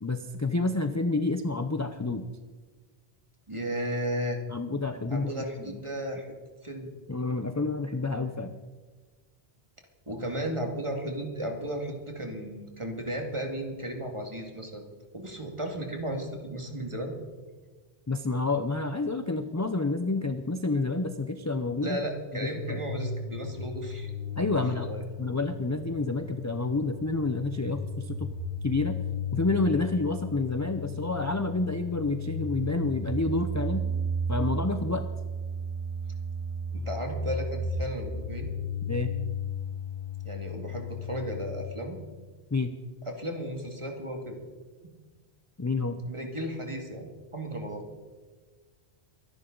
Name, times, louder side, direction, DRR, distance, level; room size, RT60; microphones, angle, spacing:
voice 1, 0.0-2.3 4.5-5.8 7.1-8.5 18.1-22.0 22.3-22.8 24.4-24.9 25.2-28.3 28.6-29.0 29.3-33.8 34.3-35.1 38.9-39.1 42.5-42.7 45.6-46.0, left 3 dB, 20° left, 8 dB, 0.5 m, -29 dB
voice 2, 3.5-4.4 5.1-6.3 6.6-6.9 10.1-14.9 15.1-17.1 21.8-24.1 24.7-25.0 36.7-38.5 40.2-42.0 43.1-44.4 46.1-47.9, right 1 dB, 30° right, 3 dB, 2.1 m, -34 dB
sound 1, 22.4-41.6, left 1 dB, 70° left, 2.3 m, -34 dB
23.5 x 11.0 x 3.9 m, 1.4 s
omnidirectional pair, 1.1 m